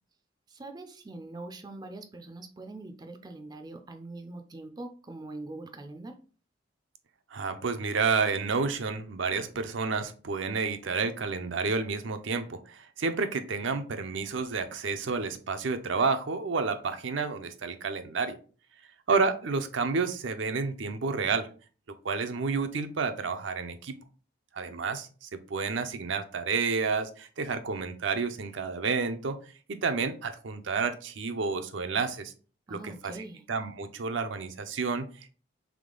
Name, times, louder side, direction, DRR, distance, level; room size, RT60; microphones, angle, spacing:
voice 1, 0.5-6.2 32.7-33.4, right 2 dB, 20° right, 5 dB, 0.4 m, -43 dB
voice 2, 7.3-18.4 19.1-21.5 21.9-24.0 24.5-29.4 29.7-32.3 32.7-33.1 33.5-35.3, right 4 dB, 75° right, 8 dB, 0.5 m, -30 dB
3.5 x 3.2 x 3.7 m, 0.39 s
head